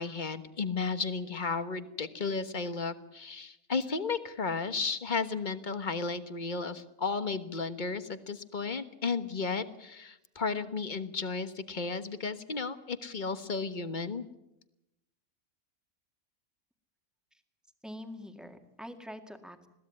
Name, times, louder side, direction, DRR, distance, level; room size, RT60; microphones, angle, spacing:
voice 1, 0.0-14.2, left 4 dB, 35° left, 11 dB, 1.4 m, -34 dB
voice 2, 17.8-19.7, equal, ahead, 6 dB, 2.0 m, -45 dB
21.5 x 16.0 x 9.8 m, 0.87 s
omnidirectional pair, 1.4 m